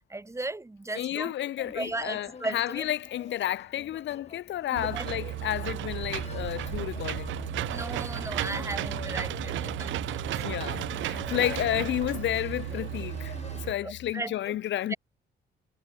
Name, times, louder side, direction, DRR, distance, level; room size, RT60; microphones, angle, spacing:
voice 1, 0.0-1.3 1.6-2.8 4.7-5.0 7.7-10.4 11.2-11.5 13.8-14.6 14.9-15.0, right 2 dB, 15° right, 1.5 m, -37 dB
voice 2, 0.9-7.3 10.4-13.3 13.6-14.9, left 13 dB, 65° left, 0.7 m, -31 dB
sound 1, 1.5-13.7, left 5 dB, 35° left, 3.3 m, -48 dB
Engine / Mechanisms, 4.8-13.7, right 15 dB, 75° right, 0.5 m, -34 dB
Piano, 6.1-14.1, left 16 dB, 85° left, 1.1 m, -43 dB
cardioid pair, 90°, 20 cm